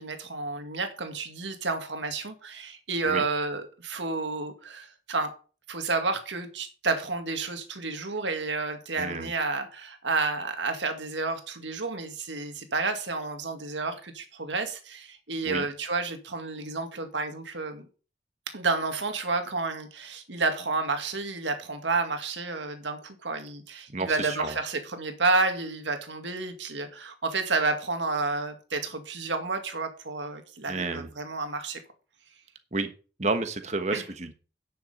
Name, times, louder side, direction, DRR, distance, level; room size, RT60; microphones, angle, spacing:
voice 1, 0.0-5.3 5.7-17.9 18.5-31.8 33.9-34.0, right 3 dB, 90° right, 2.0 m, -30 dB
voice 2, 9.0-9.3 15.4-15.7 23.9-24.5 30.7-31.1 32.7-32.9 33.2-34.3, right 3 dB, 40° right, 1.2 m, -30 dB
10.0 x 6.9 x 5.5 m
head